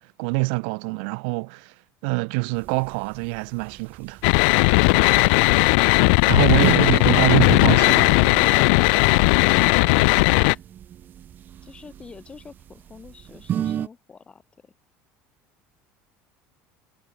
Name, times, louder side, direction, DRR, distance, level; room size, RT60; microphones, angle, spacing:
voice 1, 0.2-1.7 2.0-4.2 6.3-8.1, right 36 dB, 85° right, 1.0 m, -24 dB
sound 1, 2.6-13.9, right 10 dB, 35° right, 4.1 m, -35 dB
sound 2, 4.2-10.5, left 32 dB, 85° left, 0.4 m, -17 dB
Speech synthesizer, 6.6-9.7, right 24 dB, 65° right, 6.2 m, -46 dB
voice 2, 11.6-14.7, left 5 dB, 20° left, 7.5 m, -46 dB
cardioid pair, 160°, 6 cm